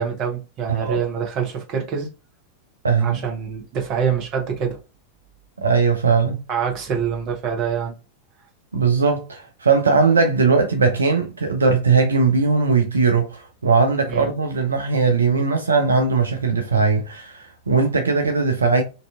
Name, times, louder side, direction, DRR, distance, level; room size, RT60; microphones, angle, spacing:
voice 1, 0.0-2.1 3.0-4.8 6.5-7.9 14.1-14.3, right 7 dB, 35° right, 0.7 m, -25 dB
voice 2, 0.7-1.0 2.8-3.2 5.6-6.4 8.7-18.8, right 4 dB, 75° right, 0.3 m, -19 dB
2.6 x 2.3 x 2.3 m
figure-of-eight pair, 90°, 0 cm